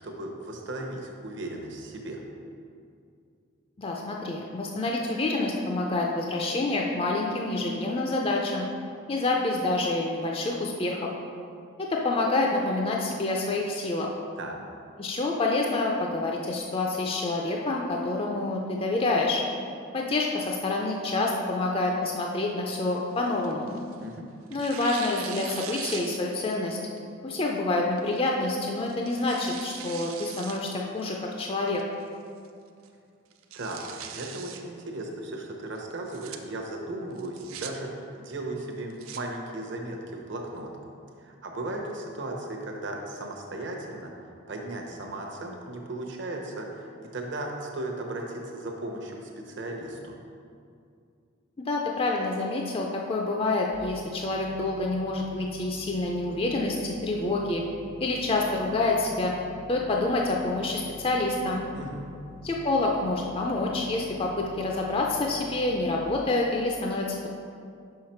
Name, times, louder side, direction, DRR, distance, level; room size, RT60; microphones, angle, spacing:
voice 1, 0.0-2.2 14.4-14.6 24.0-24.3 33.5-40.7 41.2-44.1 44.5-50.2 61.7-62.1, right 2 dB, 55° right, 1 dB, 0.9 m, -36 dB
voice 2, 3.8-8.7 9.1-11.1 11.9-14.1 15.0-19.4 19.9-23.8 24.5-26.8 27.2-31.8 51.6-57.6 58.0-59.3 59.7-61.6 62.4-67.3, left 2 dB, 25° left, -1 dB, 0.4 m, -27 dB
Tearing, 22.7-24.0 24.5-26.6 27.0-27.1 28.0-28.3 28.8-30.6 31.0-31.1 31.7-32.1 32.4-32.5 32.8-32.9 33.3-34.6 35.9-36.4 37.2-37.7 38.7-39.2, right 8 dB, 80° right, 0.5 m, -41 dB
sound 1, 53.7-66.0, left 1 dB, 80° left, 1.3 m, -47 dB
5.7 x 5.7 x 4.4 m, 2.3 s
head